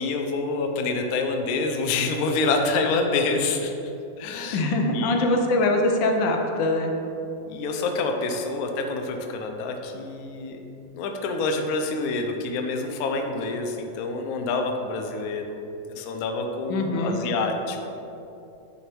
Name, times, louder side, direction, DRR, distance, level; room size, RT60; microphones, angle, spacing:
voice 1, 0.0-3.7 4.2-4.6 4.9-5.3 7.4-10.6 10.9-15.6 16.0-17.9, left 3 dB, 65° left, 4 dB, 1.0 m, -27 dB
voice 2, 4.5-6.9 16.7-17.2, left 2 dB, 85° left, 3 dB, 1.5 m, -23 dB
9.8 x 3.4 x 4.5 m, 2.8 s
omnidirectional pair, 2.0 m